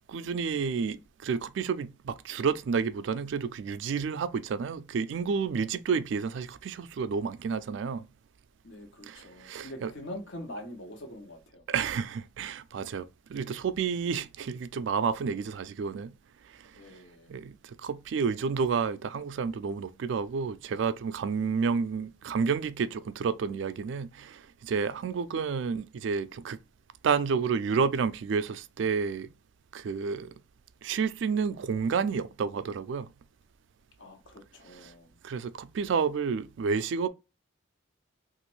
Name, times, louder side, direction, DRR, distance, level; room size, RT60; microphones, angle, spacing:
voice 1, 0.1-8.1 9.1-9.9 11.7-16.1 16.4-16.8 17.3-26.6 27.0-29.3 29.7-30.3 30.8-33.1 35.2-37.1, right 5 dB, 70° right, 0.3 m, -30 dB
voice 2, 8.6-11.6 16.6-17.3 34.0-35.2, left 1 dB, 70° left, 0.9 m, -44 dB
3.0 x 2.5 x 3.0 m
head